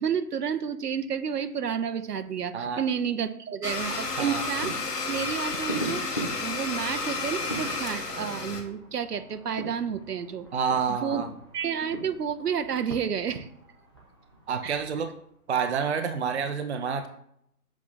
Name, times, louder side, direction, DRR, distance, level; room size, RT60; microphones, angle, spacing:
voice 1, 0.0-4.7 5.1-10.5 11.0-11.2 11.5-13.5 14.6-14.8, right 7 dB, 80° right, 11 dB, 0.8 m, -30 dB
Domestic sounds home sounds, 3.6-8.6, left 3 dB, 80° left, 1.6 m, -32 dB
sound 1, 3.8-15.5 15.9-16.0, right 1 dB, 15° left, 0.6 m, -41 dB
voice 2, 10.5-11.3 14.5-15.1 15.5-17.1, right 6 dB, 45° right, 7 dB, 0.6 m, -28 dB
7.3 x 3.4 x 4.2 m, 0.71 s
hypercardioid pair, 160°, 47 cm